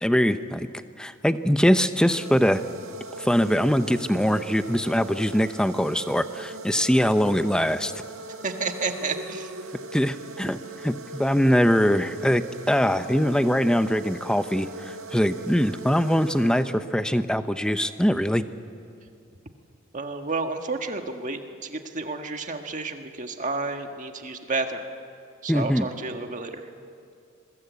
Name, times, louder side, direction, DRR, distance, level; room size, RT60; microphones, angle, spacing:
voice 1, 0.0-0.7 1.0-2.6 3.2-7.9 9.9-18.4 25.5-25.9, equal, 5° left, 11 dB, 0.7 m, -22 dB
sound 1, 1.9-17.1, right 2 dB, 75° right, 1.6 m, -40 dB
voice 2, 8.4-9.5 19.9-24.8 25.4-26.6, right 3 dB, 35° right, 5 dB, 1.6 m, -31 dB
27.5 x 22.5 x 8.3 m, 2.5 s
head